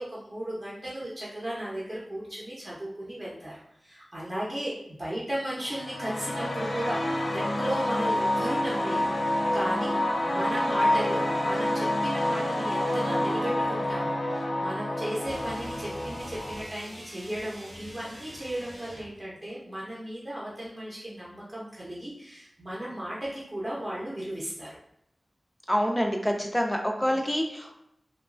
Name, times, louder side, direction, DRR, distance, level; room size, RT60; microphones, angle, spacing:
voice 1, 0.0-3.5 3.8-10.0 10.2-24.7 27.0-27.2, right 1 dB, 30° right, -7 dB, 0.7 m, -35 dB
sound 1, 5.6-16.6, left 1 dB, 90° left, 0.6 m, -28 dB
sound 2, 15.2-19.2, right 1 dB, 65° right, 0.8 m, -45 dB
voice 2, 25.7-27.8, equal, 10° left, 2 dB, 0.3 m, -27 dB
2.9 x 2.2 x 2.4 m, 0.76 s
wide cardioid pair, 65°, 0 cm